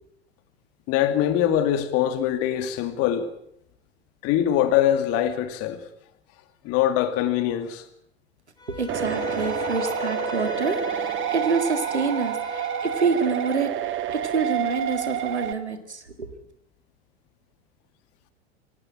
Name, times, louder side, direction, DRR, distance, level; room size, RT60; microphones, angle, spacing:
voice 1, 0.9-3.3 4.2-5.8 6.6-7.9, left 11 dB, 45° left, 2.4 m, -23 dB
Bowed string instrument, 8.6-13.6, left 4 dB, 15° left, 4.5 m, -35 dB
voice 2, 8.7-16.3, right 4 dB, 90° right, 2.2 m, -27 dB
sound 1, 8.9-15.5, right 10 dB, 35° right, 1.6 m, -29 dB
18.0 x 17.0 x 8.8 m
figure-of-eight pair, 85°, 33 cm